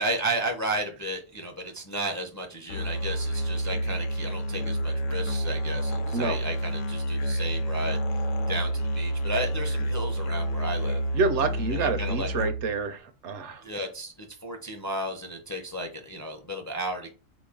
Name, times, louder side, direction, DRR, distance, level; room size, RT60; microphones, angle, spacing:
voice 1, 0.0-8.0 8.5-11.0 11.7-12.3 13.6-17.1, right 1 dB, 20° left, 3 dB, 0.5 m, -33 dB
Musical instrument, 2.7-12.8, equal, 80° left, 1.0 m, -29 dB
voice 2, 11.1-13.6, right 4 dB, 70° right, 9 dB, 0.9 m, -28 dB
4.3 x 3.0 x 3.6 m, 0.33 s
omnidirectional pair, 1.3 m